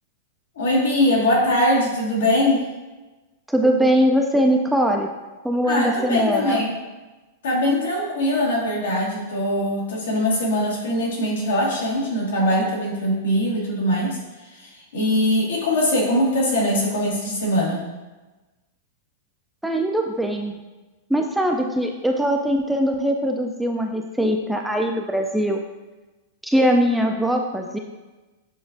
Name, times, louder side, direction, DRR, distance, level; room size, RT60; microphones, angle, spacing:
voice 1, 0.5-2.6 5.6-6.7 7.4-14.2 14.5-17.9, left 1 dB, 85° left, -4 dB, 1.4 m, -22 dB
voice 2, 3.5-5.1 5.4-6.6 19.6-20.6 21.1-25.6 26.4-27.8, equal, 5° right, 3 dB, 0.3 m, -21 dB
7.1 x 2.4 x 2.5 m, 1.2 s
hypercardioid pair, 140°, 0 cm